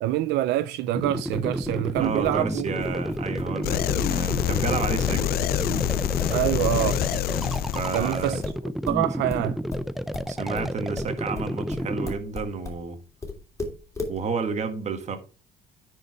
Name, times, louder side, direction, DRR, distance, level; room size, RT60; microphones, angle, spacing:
voice 1, 0.0-2.9 6.3-7.0 7.9-8.4 8.9-9.6, right 15 dB, 85° right, 0.5 m, -26 dB
sound 1, 0.9-12.1, equal, ahead, 0.5 m, -30 dB
sound 2, 1.3-6.8 7.1-12.8 13.2-14.2, left 3 dB, 20° left, 2.9 m, -37 dB
voice 2, 2.0-5.3 7.7-8.4 10.3-13.0 14.1-15.2, right 5 dB, 40° right, 1.5 m, -31 dB
sound 3, 3.6-8.5, left 12 dB, 65° left, 0.5 m, -26 dB
9.7 x 4.8 x 4.5 m
cardioid pair, 110°, 17 cm